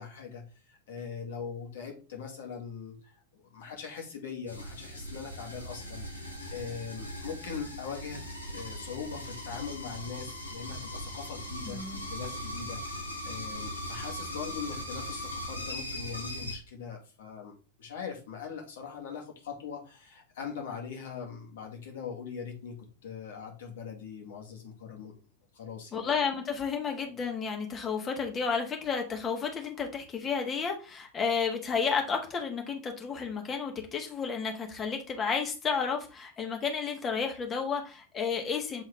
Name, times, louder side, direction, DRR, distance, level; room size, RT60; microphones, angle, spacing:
voice 1, 0.0-11.8 12.1-25.2 25.5-26.1, left 6 dB, 60° left, 0 dB, 1.9 m, -41 dB
sound 1, 4.5-16.6, equal, 85° left, 1.4 m, -39 dB
voice 2, 11.6-12.0 25.9-38.8, left 5 dB, 25° left, 3 dB, 1.4 m, -32 dB
7.9 x 3.6 x 3.4 m, 0.34 s
figure-of-eight pair, 90°, 0 cm